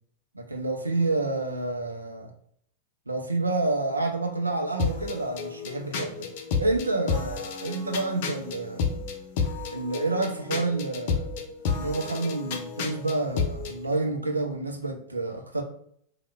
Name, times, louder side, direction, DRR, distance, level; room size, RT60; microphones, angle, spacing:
voice 1, 0.3-2.3 3.1-6.3 6.6-9.0 9.7-11.3 11.7-15.6, right 2 dB, 80° right, 0.5 m, -29 dB
sound 1, 4.8-13.8, left 5 dB, 50° left, 0.5 m, -31 dB
3.1 x 2.1 x 3.3 m
figure-of-eight pair, 90°, 0 cm